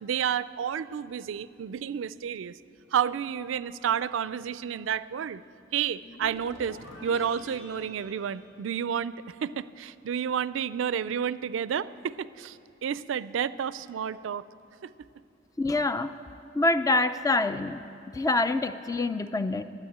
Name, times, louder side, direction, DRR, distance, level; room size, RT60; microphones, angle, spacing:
voice 1, 0.0-2.6 2.9-5.4 5.7-9.1 9.4-14.4 14.8-14.9, right 8 dB, 75° right, 17 dB, 0.4 m, -30 dB
sound 1, 6.0-9.3, left 1 dB, 85° left, 1.9 m, -47 dB
voice 2, 15.6-16.1 16.6-17.8 18.1-19.6, left 2 dB, 20° left, 12 dB, 0.4 m, -26 dB
12.0 x 9.3 x 8.6 m, 2.7 s
head